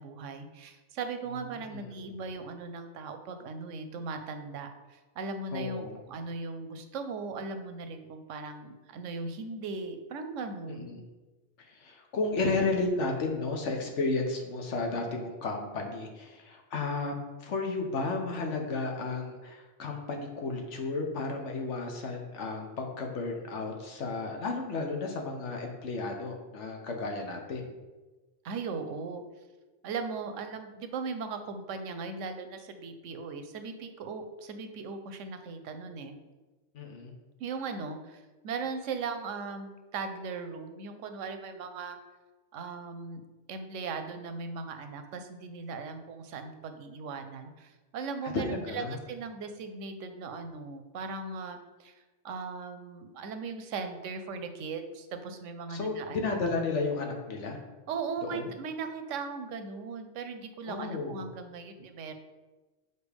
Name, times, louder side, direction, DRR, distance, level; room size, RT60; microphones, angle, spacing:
voice 1, 0.0-11.0 28.4-29.2 29.8-36.2 37.4-42.0 42.5-43.2 43.5-56.4 57.9-62.1, right 4 dB, 90° right, 7 dB, 1.0 m, -38 dB
voice 2, 5.5-6.0 10.8-11.0 11.6-17.1 17.4-27.7 36.7-37.1 48.3-49.0 55.7-57.6 58.2-58.5 60.7-61.2, left 3 dB, 75° left, 2 dB, 1.2 m, -33 dB
6.8 x 4.3 x 3.4 m, 1.2 s
omnidirectional pair, 1.2 m